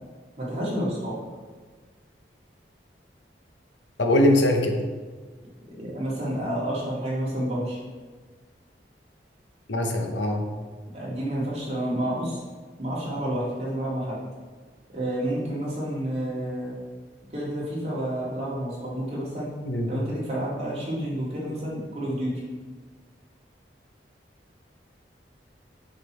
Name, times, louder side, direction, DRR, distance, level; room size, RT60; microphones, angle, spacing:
voice 1, 0.4-1.1 5.7-7.8 10.9-12.4 12.8-14.2 14.9-16.7 17.3-19.5 19.9-22.3, right 1 dB, 35° right, -6 dB, 2.4 m, -29 dB
voice 2, 4.0-4.7 9.7-10.5 19.6-19.9, left 1 dB, 90° left, 3 dB, 1.0 m, -22 dB
6.6 x 6.1 x 4.5 m, 1.5 s
head